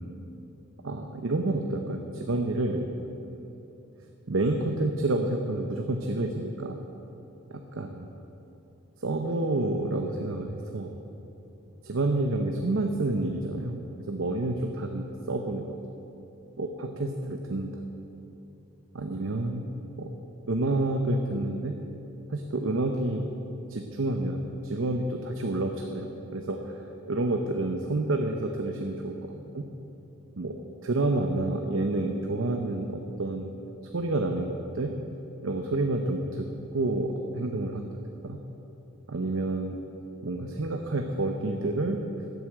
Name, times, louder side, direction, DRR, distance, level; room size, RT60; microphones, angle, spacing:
voice 1, 0.8-2.8 3.3-3.4 4.3-6.8 7.5-8.1 9.0-10.9 11.8-13.8 14.1-15.7 16.6-17.8 18.9-19.6 20.0-20.1 20.5-21.7 22.3-23.3 23.7-26.8 27.1-29.6 30.4-33.5 33.9-35.0 35.4-38.0 38.2-38.4 39.1-39.8 40.2-42.0, right 2 dB, 85° right, 4 dB, 0.8 m, -29 dB
12.0 x 8.0 x 7.5 m, 2.9 s
head